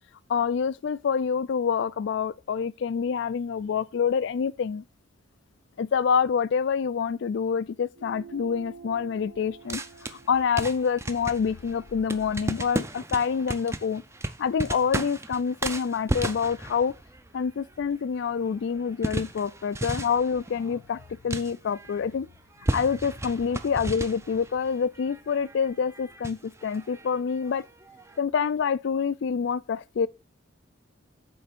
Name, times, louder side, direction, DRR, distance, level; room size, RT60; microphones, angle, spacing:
voice 1, 0.3-4.8 5.8-9.8 10.3-14.0 14.4-16.9 17.3-21.0 21.2-22.3 22.7-27.6 28.2-30.1, left 6 dB, 60° left, 0.3 m, -27 dB
sound 1, 7.9-12.8, right 5 dB, 90° right, 1.5 m, -49 dB
sound 2, 9.7-22.2 22.5-28.2, right 1 dB, 15° right, 0.5 m, -35 dB
8.6 x 3.4 x 5.1 m
head